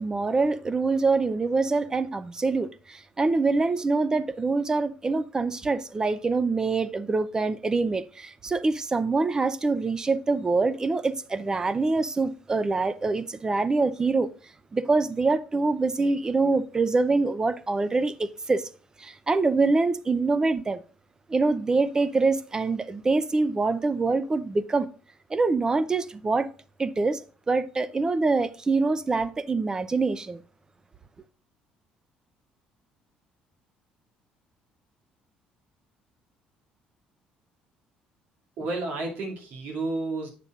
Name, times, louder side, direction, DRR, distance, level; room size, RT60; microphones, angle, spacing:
voice 1, 0.0-14.3 14.7-18.7 19.0-20.8 21.3-24.9 25.3-26.5 26.8-30.4, right 3 dB, 25° right, 0.6 m, -25 dB
voice 2, 38.6-40.3, right 2 dB, 70° right, 2.3 m, -31 dB
8.4 x 6.7 x 2.4 m
cardioid pair, 95°, 3 cm